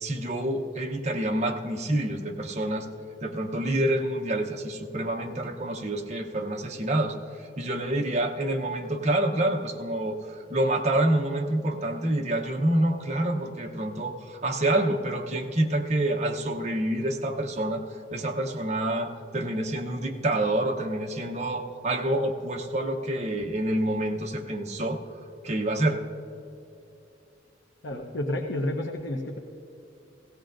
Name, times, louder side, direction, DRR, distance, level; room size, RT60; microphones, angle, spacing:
voice 1, 0.0-2.9 3.2-7.2 7.6-25.0 25.4-26.0, right 1 dB, 40° right, 2 dB, 0.9 m, -27 dB
voice 2, 27.8-29.4, left 1 dB, 80° left, 0 dB, 0.9 m, -30 dB
17.0 x 16.5 x 2.6 m, 2.6 s
head